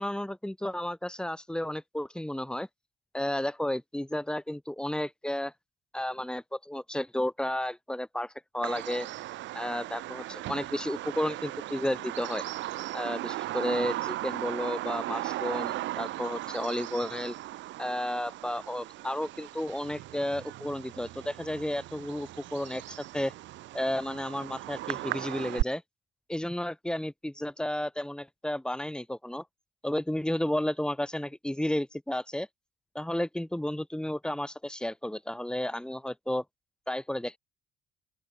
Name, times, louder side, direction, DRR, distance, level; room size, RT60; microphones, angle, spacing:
voice 1, 0.0-2.7 3.1-5.5 5.9-9.1 9.5-12.4 12.9-17.3 17.8-23.3 23.7-25.8 26.3-29.4 29.8-32.5 32.9-36.4 36.9-37.4, left 1 dB, 5° left, 5.9 m, -32 dB
Bird vocalization bird call bird song, 8.6-25.6, right 16 dB, 85° right, 6.2 m, -37 dB
open air
cardioid pair, 100°, 19 cm